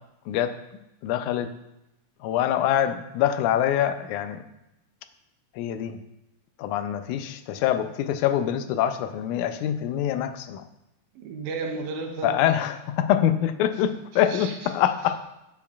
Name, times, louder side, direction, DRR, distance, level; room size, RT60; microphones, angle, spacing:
voice 1, 1.0-1.5 2.2-4.4 5.6-6.0 6.6-10.6 12.2-15.2, left 10 dB, 90° left, 10 dB, 2.0 m, -25 dB
voice 2, 11.1-12.4 13.7-13.8 14.1-14.8, right 3 dB, 85° right, 4 dB, 2.2 m, -34 dB
8.9 x 7.3 x 2.4 m, 0.89 s
omnidirectional pair, 3.4 m